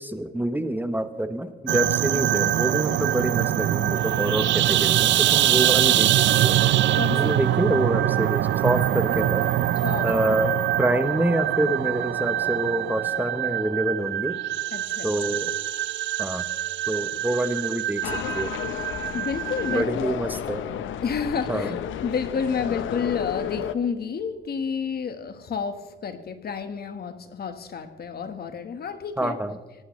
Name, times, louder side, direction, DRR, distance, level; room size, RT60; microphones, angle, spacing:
voice 1, 0.0-6.6 7.1-9.5 10.0-14.4 15.0-15.6 16.2-16.5 16.9-18.5 19.7-20.7 21.5-21.8 29.2-29.6, right 1 dB, 10° right, 9 dB, 1.0 m, -27 dB
sound 1, 1.7-19.8, right 12 dB, 70° right, 0.6 m, -24 dB
voice 2, 6.9-7.3 9.8-10.1 14.7-15.2 19.1-20.1 21.0-21.7 22.0-29.4, left 6 dB, 50° left, 9 dB, 1.4 m, -30 dB
sound 2, 18.0-23.7, left 9 dB, 80° left, 1.0 m, -32 dB
23.5 x 17.5 x 3.2 m, 1.2 s
cardioid pair, 90°, 20 cm